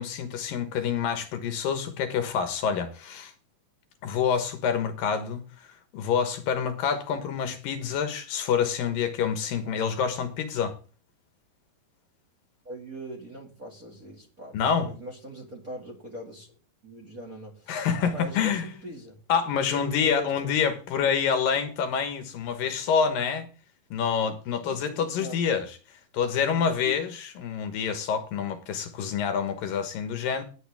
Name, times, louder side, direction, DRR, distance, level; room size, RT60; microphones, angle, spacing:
voice 1, 0.0-3.3 4.0-5.4 5.9-10.7 14.5-14.9 17.7-18.6 19.3-23.5 23.9-25.7 26.1-30.4, left 7 dB, 70° left, 2.9 m, -27 dB
voice 2, 12.6-16.5 16.8-17.8 18.1-19.2 19.7-20.5 21.0-21.1 24.3-25.4 26.8-27.0, equal, 30° right, 2.0 m, -41 dB
17.0 x 8.3 x 3.5 m
omnidirectional pair, 4.3 m